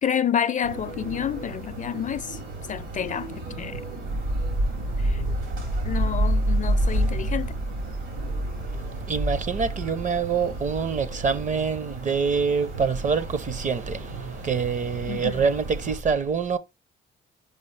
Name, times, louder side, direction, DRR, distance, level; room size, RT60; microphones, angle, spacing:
voice 1, 0.0-2.4 2.7-3.8 5.0-5.2 5.8-7.5 15.1-15.5, left 8 dB, 40° left, 0.4 m, -29 dB
sound 1, 0.6-16.0, right 1 dB, 80° right, 3.2 m, -29 dB
voice 2, 9.1-16.6, right 5 dB, 40° right, 0.7 m, -26 dB
5.4 x 5.3 x 3.2 m
cardioid pair, 90°, 20 cm